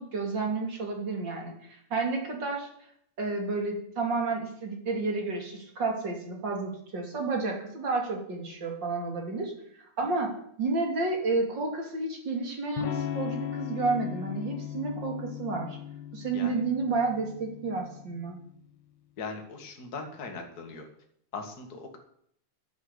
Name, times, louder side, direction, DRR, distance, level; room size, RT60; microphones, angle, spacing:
voice 1, 0.0-2.7 3.2-10.3 10.6-15.8 16.1-18.4, right 3 dB, 35° right, 2 dB, 3.2 m, -31 dB
Electric guitar / Strum, 12.8-18.5, left 10 dB, 90° left, 2.5 m, -38 dB
voice 2, 19.2-20.9 21.3-22.0, left 4 dB, 35° left, 3 dB, 2.5 m, -39 dB
11.0 x 10.5 x 8.3 m, 0.68 s
omnidirectional pair, 3.5 m